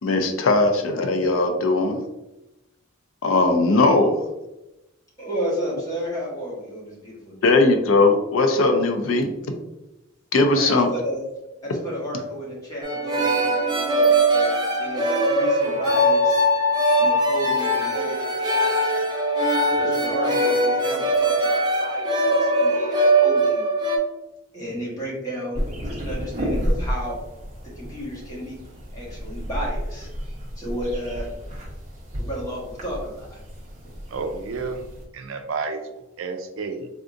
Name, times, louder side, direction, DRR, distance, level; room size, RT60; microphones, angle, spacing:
voice 1, 0.0-2.0 3.2-4.1 7.4-9.3 10.3-10.9, left 2 dB, 80° left, 5 dB, 0.5 m, -19 dB
voice 2, 5.2-7.5 10.6-11.2 11.6-16.4 17.0-18.9 19.7-23.6 24.5-27.2 27.7-28.6 28.9-31.3 32.2-33.4, equal, 15° left, -6 dB, 1.2 m, -32 dB
sound 1, 12.8-24.0, right 1 dB, 20° right, 0.4 m, -21 dB
sound 2, 25.5-35.1, equal, 35° right, 0.8 m, -31 dB
voice 3, 34.1-34.8 35.1-36.9, right 4 dB, 80° right, 6 dB, 0.4 m, -31 dB
3.5 x 2.6 x 2.5 m, 0.95 s
head